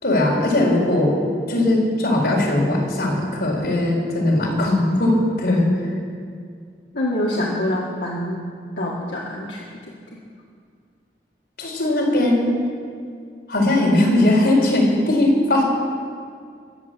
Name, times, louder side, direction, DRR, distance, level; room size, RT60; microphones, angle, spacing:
voice 1, 0.0-1.2 1.5-5.9 11.6-12.6 13.5-15.6, left 1 dB, 65° left, -3 dB, 4.6 m, -19 dB
voice 2, 6.9-8.4 8.8-9.6 10.1-10.2, left 1 dB, 85° left, -4 dB, 1.9 m, -25 dB
21.0 x 7.4 x 8.3 m, 2.2 s
head